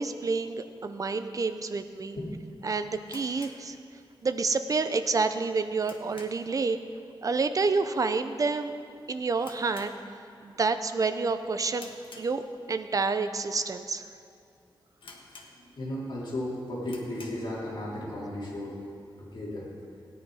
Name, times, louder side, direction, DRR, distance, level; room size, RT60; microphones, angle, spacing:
voice 1, 0.0-2.2 2.6-3.8 4.2-6.8 7.2-8.7 9.1-9.9 10.4-11.9 12.2-12.4 12.7-14.0, right 4 dB, 40° right, 9 dB, 0.6 m, -28 dB
sound 1, 3.0-4.4 4.7-4.8 5.3-6.6 6.9-7.2 7.5-7.6 8.3-8.6 8.8-8.9 9.3-10.5 10.9-11.2 11.7-12.8 13.4-13.5 14.1-14.2 14.4-14.5 15.0-16.0 16.3-16.4 16.8-17.5, left 3 dB, 75° left, 1.4 m, -50 dB
voice 2, 15.7-18.8 19.2-19.7, left 1 dB, 60° left, -5 dB, 3.3 m, -35 dB
17.5 x 10.0 x 4.9 m, 2.4 s
wide cardioid pair, 160°, 9 cm